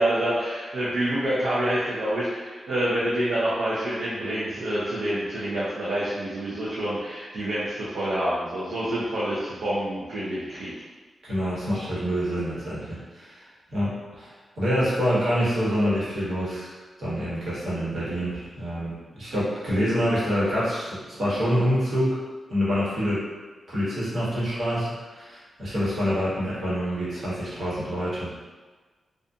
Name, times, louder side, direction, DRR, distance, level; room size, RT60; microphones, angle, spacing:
voice 1, 0.0-10.7, right 1 dB, 85° right, -9 dB, 0.6 m, -27 dB
voice 2, 11.2-13.4 13.7-13.9 14.2-14.3 14.6-16.7 17.0-22.2 22.5-23.2 23.7-28.3, equal, 65° right, -10 dB, 1.2 m, -26 dB
2.6 x 2.4 x 2.3 m, 1.4 s
cardioid pair, 90°, 0 cm